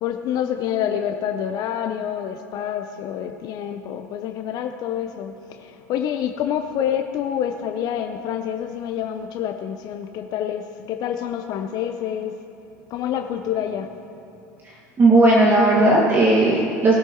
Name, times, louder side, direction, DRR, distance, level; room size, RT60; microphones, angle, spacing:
voice 1, 0.0-12.3 12.9-13.9, left 9 dB, 50° left, 6 dB, 0.7 m, -27 dB
voice 2, 15.0-17.0, right 2 dB, 25° right, -4 dB, 1.9 m, -16 dB
20.0 x 7.8 x 3.1 m, 2.8 s
hypercardioid pair, 80°, 8 cm